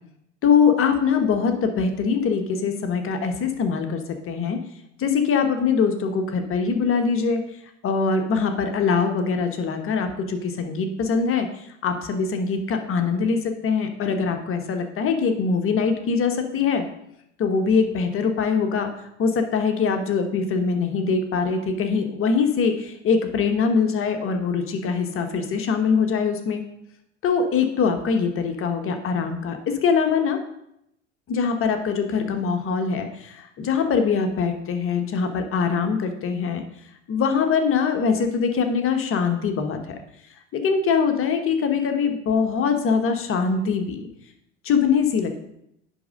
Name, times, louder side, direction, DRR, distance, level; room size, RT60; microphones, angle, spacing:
voice 1, 0.4-4.0 4.3-4.6 5.0-7.4 7.8-11.5 11.8-16.8 17.4-18.9 19.2-26.6 27.2-30.4 31.3-36.6 37.1-40.0 40.5-44.1 44.6-45.4, left 5 dB, 35° left, 6 dB, 1.1 m, -23 dB
9.9 x 3.7 x 5.3 m, 0.79 s
hypercardioid pair, 75°, 36 cm